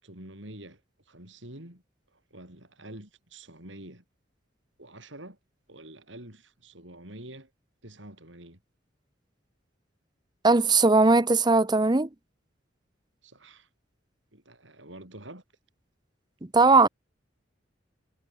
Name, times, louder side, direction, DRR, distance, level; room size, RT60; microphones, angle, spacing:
voice 1, 0.0-1.8 2.1-4.0 4.8-5.4 5.7-7.5 7.8-8.6 13.2-13.7 14.3-15.4, right 1 dB, 70° right, 7.6 m, -47 dB
voice 2, 10.4-12.1 16.4-16.9, right 3 dB, 20° right, 0.8 m, -19 dB
head